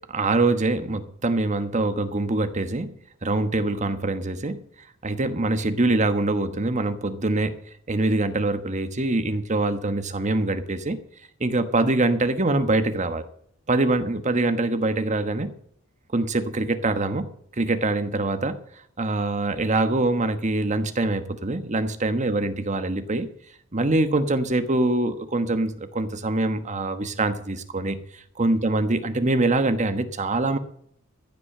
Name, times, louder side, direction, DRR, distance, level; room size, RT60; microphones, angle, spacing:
voice 1, 0.0-2.9 3.2-4.6 5.0-7.6 7.9-11.0 11.4-13.2 13.7-15.5 16.1-17.3 17.6-18.6 19.0-23.3 23.7-30.6, right 2 dB, 35° right, 10 dB, 1.2 m, -24 dB
15.0 x 6.1 x 8.7 m, 0.66 s
head